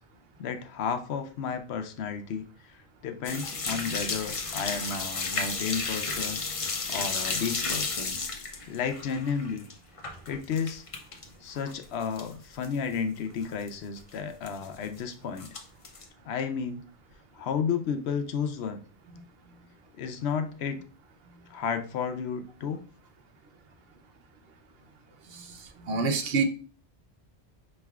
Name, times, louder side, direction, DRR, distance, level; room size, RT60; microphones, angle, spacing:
voice 1, 0.4-2.5 3.0-6.4 6.9-8.2 8.7-9.7 10.3-10.8 11.4-15.5 16.2-16.8 17.3-18.8 20.0-20.8 21.5-22.8, left 6 dB, 75° left, 8 dB, 0.8 m, -32 dB
sound 1, 3.2-11.3 11.6-12.3 12.6-12.7 13.2-13.3 13.4-13.7 14.5-15.0 15.4-16.0, left 4 dB, 40° left, 0.5 m, -33 dB
voice 2, 25.3-26.4, right 4 dB, 65° right, 7 dB, 0.8 m, -29 dB
5.0 x 3.2 x 2.3 m, 0.38 s
omnidirectional pair, 1.1 m